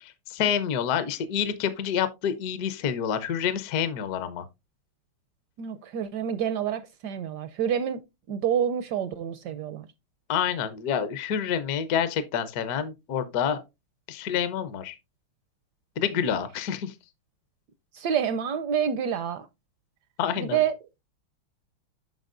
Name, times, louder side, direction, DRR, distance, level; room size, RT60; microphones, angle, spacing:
voice 1, 0.0-4.5 10.3-13.6 14.1-15.0 16.0-16.9 20.2-20.6, left 8 dB, 60° left, 1.0 m, -28 dB
voice 2, 5.6-8.0 8.3-9.9 17.9-19.5 20.4-20.7, right 8 dB, 75° right, 1.0 m, -28 dB
9.1 x 5.9 x 2.5 m
omnidirectional pair, 2.3 m